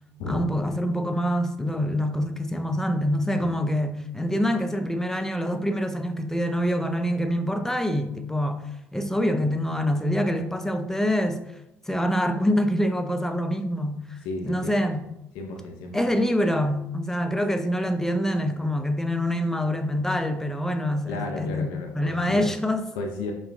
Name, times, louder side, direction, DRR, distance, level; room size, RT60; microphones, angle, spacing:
voice 1, 0.3-8.6 8.9-11.4 11.9-14.2 14.4-15.0 15.9-22.8, equal, 5° left, 0.5 m, -25 dB
voice 2, 14.2-14.9 15.3-16.0 21.1-22.5 22.9-23.3, left 2 dB, 70° left, 0.5 m, -33 dB
5.7 x 2.3 x 2.4 m
hypercardioid pair, 55°, 8 cm